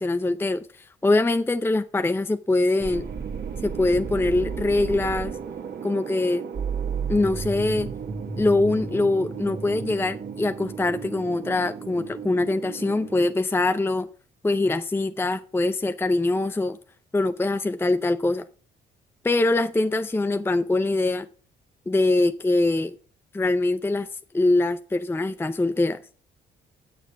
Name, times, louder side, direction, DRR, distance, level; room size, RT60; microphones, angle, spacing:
voice 1, 0.0-3.1 3.6-5.4 5.8-6.5 7.1-7.9 8.4-14.1 14.4-16.8 17.1-18.4 19.2-21.3 21.9-23.0 23.3-24.1 24.3-26.0, left 2 dB, 10° left, 0.5 m, -23 dB
sound 1, 2.8-13.3, right 6 dB, 55° right, 1.8 m, -33 dB
9.3 x 6.5 x 5.9 m
cardioid pair, 90°, 20 cm